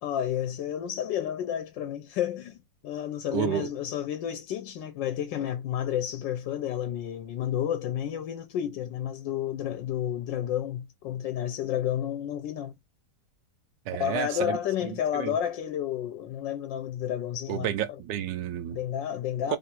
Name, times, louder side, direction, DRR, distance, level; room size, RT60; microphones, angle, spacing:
voice 1, 0.0-12.8 14.0-17.7 18.7-19.6, left 10 dB, 85° left, 1.4 m, -31 dB
voice 2, 3.3-3.7 13.9-14.6 14.9-15.3 17.5-18.8 19.5-19.6, right 10 dB, 80° right, 1.3 m, -31 dB
3.4 x 2.5 x 4.3 m
omnidirectional pair, 1.9 m